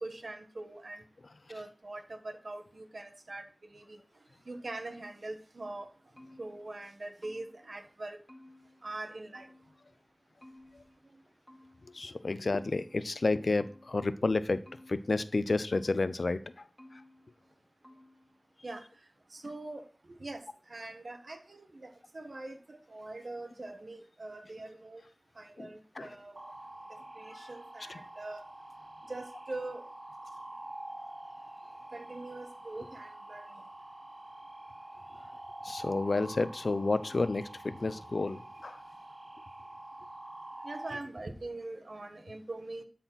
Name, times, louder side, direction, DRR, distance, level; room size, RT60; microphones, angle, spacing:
voice 1, 0.0-1.0 1.5-4.0 4.5-5.9 6.4-8.2 8.8-9.5 18.6-18.8 19.3-25.1 25.4-26.4 27.1-28.4 29.1-29.8 31.9-33.5 40.6-42.8, right 2 dB, 70° right, 7 dB, 1.3 m, -43 dB
sound 1, 5.6-7.8 8.3-9.9 10.4-12.1 12.5-14.2 14.7-16.3 16.8-17.6 17.8-18.4, left 1 dB, 10° left, 1.9 m, -57 dB
voice 2, 11.8-14.6 14.9-17.0 25.6-26.1 27.3-27.5 27.9-28.0 35.6-38.8, left 3 dB, 80° left, 14 dB, 0.6 m, -31 dB
sound 2, 26.4-40.9, right 1 dB, 50° right, 0.7 m, -47 dB
12.0 x 4.3 x 5.8 m, 0.39 s
wide cardioid pair, 60°, 0 cm